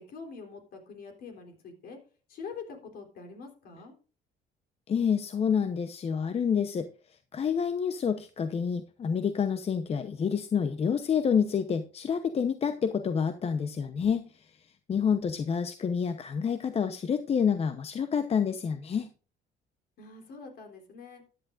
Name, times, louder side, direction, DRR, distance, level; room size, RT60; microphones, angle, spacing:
voice 1, 0.0-2.0 2.3-3.9 20.0-21.2, left 5 dB, 65° left, 3 dB, 3.7 m, -44 dB
voice 2, 4.9-6.9 7.3-14.5 14.9-19.1, left 7 dB, 35° left, 9 dB, 0.8 m, -28 dB
14.5 x 10.0 x 2.5 m, 0.35 s
cardioid pair, 110°, 17 cm